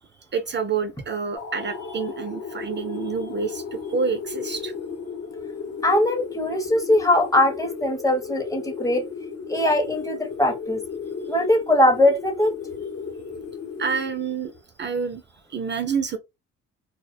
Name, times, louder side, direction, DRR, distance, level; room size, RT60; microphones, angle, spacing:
voice 1, 0.3-4.7 13.8-14.5 14.8-15.2 15.5-16.2, right 5 dB, 40° right, 0.4 m, -28 dB
sound 1, 1.4-14.6, left 5 dB, 55° left, 0.8 m, -35 dB
voice 2, 5.8-9.0 9.5-10.8 11.3-12.5, left 1 dB, 10° left, 0.7 m, -21 dB
2.3 x 2.1 x 2.5 m
cardioid pair, 90°, 30 cm